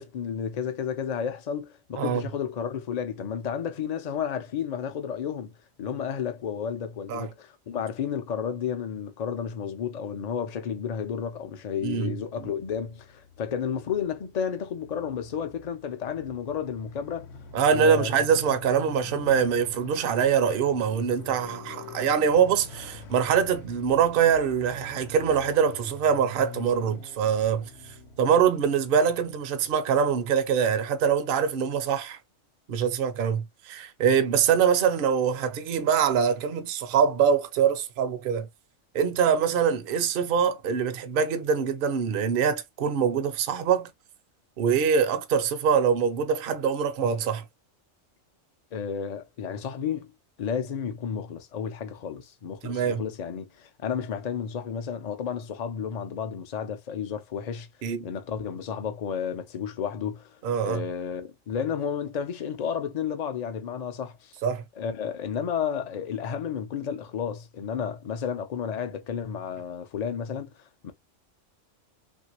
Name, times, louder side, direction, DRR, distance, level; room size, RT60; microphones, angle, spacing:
voice 1, 0.0-5.5 5.8-17.3 17.7-18.3 48.7-50.1 50.4-57.7 58.0-60.3 60.6-64.3 64.8-70.5 70.8-70.9, left 7 dB, 45° left, 0.5 m, -32 dB
Motorcycle, 11.5-29.6, left 4 dB, 60° left, 1.0 m, -46 dB
voice 2, 11.8-12.5 17.5-27.7 28.2-32.2 32.7-38.5 38.9-43.9 44.6-47.4 52.6-53.0 57.8-58.1 60.4-60.8 64.4-64.6, right 7 dB, 55° right, 0.7 m, -24 dB
3.2 x 2.6 x 2.9 m
omnidirectional pair, 1.3 m